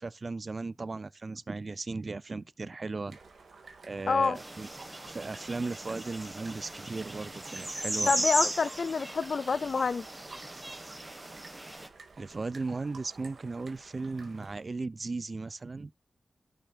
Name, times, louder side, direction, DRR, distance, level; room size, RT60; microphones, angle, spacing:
voice 1, 0.0-3.2 3.6-4.7 5.1-8.1 12.2-15.9, right 3 dB, 50° right, 0.4 m, -36 dB
sound 1, 3.1-14.6, right 4 dB, 85° right, 2.0 m, -52 dB
voice 2, 4.1-4.4 8.1-10.1, left 5 dB, 70° left, 0.3 m, -27 dB
sound 2, 4.4-11.9, right 1 dB, 20° right, 1.4 m, -36 dB
13.5 x 5.8 x 2.4 m
cardioid pair, 65°, 0 cm